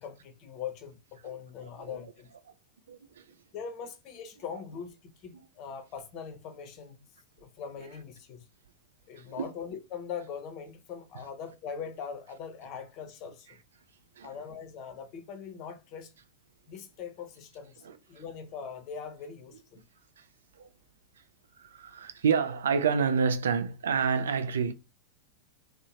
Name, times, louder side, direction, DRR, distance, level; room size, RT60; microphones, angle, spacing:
voice 1, 0.0-2.3 3.5-7.0 7.4-8.4 9.1-13.5 14.2-16.1 16.7-19.8, left 7 dB, 40° left, 0.6 m, -41 dB
voice 2, 2.9-3.3 9.2-9.5 14.2-14.3 17.8-18.0 20.6-20.7 21.6-24.7, right 6 dB, 65° right, 0.3 m, -28 dB
2.7 x 2.1 x 2.7 m
figure-of-eight pair, 90°, 0 cm